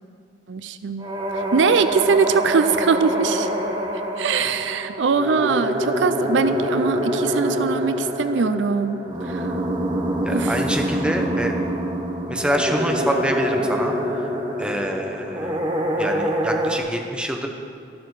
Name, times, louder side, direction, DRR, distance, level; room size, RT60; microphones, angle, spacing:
voice 1, 0.5-1.1 1.3-3.5 4.2-9.6 10.3-10.6, right 5 dB, 80° right, 12 dB, 0.5 m, -22 dB
sound 1, 1.0-16.8, equal, 25° right, 1.1 m, -25 dB
voice 2, 10.2-11.5 12.3-14.0 14.6-15.6 16.0-17.5, equal, 5° right, 2 dB, 1.0 m, -26 dB
13.0 x 12.5 x 4.8 m, 2.3 s
head